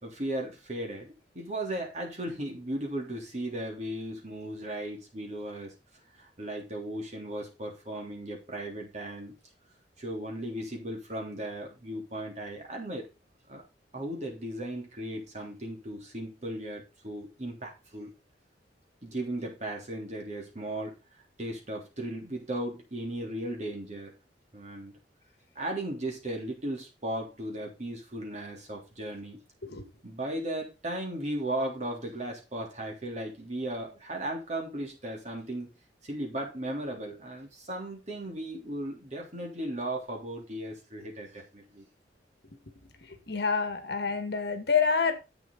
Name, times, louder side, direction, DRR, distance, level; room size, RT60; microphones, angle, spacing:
voice 1, 0.0-5.7 6.1-9.3 10.0-13.1 13.5-13.6 13.9-18.1 19.0-20.9 21.4-24.1 24.5-24.9 25.5-29.4 30.0-35.7 36.0-41.9, right 1 dB, 40° right, 1 dB, 3.4 m, -36 dB
voice 2, 43.3-45.1, left 5 dB, 65° left, 8 dB, 2.0 m, -27 dB
10.5 x 8.2 x 4.0 m, 0.27 s
head